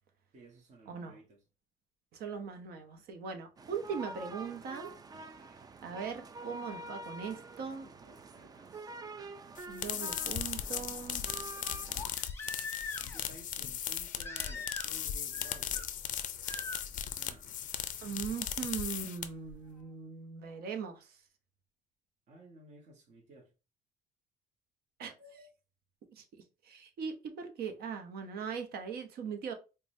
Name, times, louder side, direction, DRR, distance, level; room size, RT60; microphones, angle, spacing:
voice 1, 0.3-1.4 8.0-8.9 11.2-12.2 13.0-15.9 16.9-17.5 22.3-23.5, right 2 dB, 45° right, 1.1 m, -56 dB
voice 2, 2.1-4.9 5.8-7.9 9.7-11.2 18.0-21.2 25.0-25.5 26.1-26.2 26.6-29.5, right 6 dB, 65° right, 0.8 m, -40 dB
sound 1, 3.6-12.1, right 3 dB, 25° right, 0.3 m, -47 dB
Crying sobbing, 9.2-9.3 12.0-13.3 14.2-15.1 15.3-15.8 16.5-16.8 18.4-18.5, left 4 dB, 15° left, 0.8 m, -42 dB
sound 2, 9.6-19.5, left 10 dB, 50° left, 0.4 m, -37 dB
4.7 x 2.2 x 2.6 m
cardioid pair, 110°, 17 cm